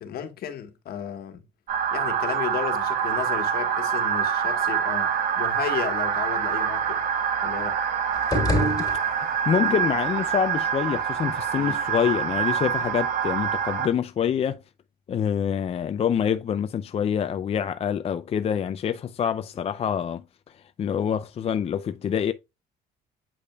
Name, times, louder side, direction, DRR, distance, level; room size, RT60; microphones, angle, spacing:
voice 1, 0.0-1.4 1.9-7.0 7.4-7.8 11.5-11.8, left 9 dB, 65° left, 1.5 m, -34 dB
sound 1, 1.7-13.9, right 8 dB, 55° right, 1.7 m, -26 dB
sound 2, 8.1-9.6, left 1 dB, 20° left, 3.3 m, -26 dB
voice 2, 9.5-14.6 15.1-20.2 20.8-22.3, left 8 dB, 35° left, 0.5 m, -26 dB
8.5 x 5.2 x 2.3 m
cardioid pair, 110°, 17 cm